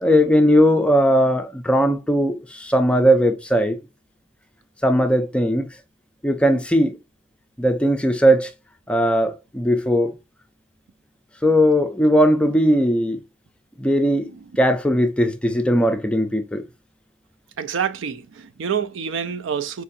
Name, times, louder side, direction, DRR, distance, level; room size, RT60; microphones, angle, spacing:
voice 1, 0.0-3.8 4.8-5.7 6.2-7.0 7.6-8.5 8.9-10.1 11.4-13.2 13.8-16.6, equal, 5° left, 0.4 m, -18 dB
voice 2, 17.6-19.8, right 7 dB, 65° right, 0.4 m, -27 dB
4.6 x 2.6 x 2.5 m
head